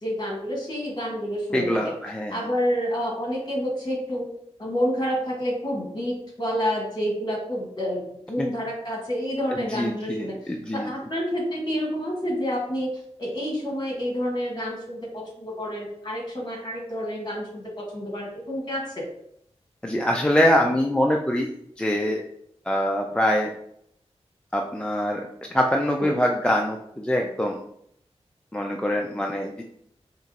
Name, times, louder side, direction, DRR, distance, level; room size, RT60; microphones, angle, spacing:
voice 1, 0.0-1.7 2.3-4.3 4.6-12.9 13.2-19.0 26.0-26.1, equal, 40° left, -2 dB, 1.4 m, -29 dB
voice 2, 1.5-2.4 8.4-8.5 9.5-10.9 19.8-21.5 21.8-22.2 22.7-23.5 24.5-27.6 28.5-29.7, equal, 10° left, 1 dB, 0.4 m, -24 dB
4.7 x 2.9 x 2.8 m, 0.72 s
wide cardioid pair, 105°, 11 cm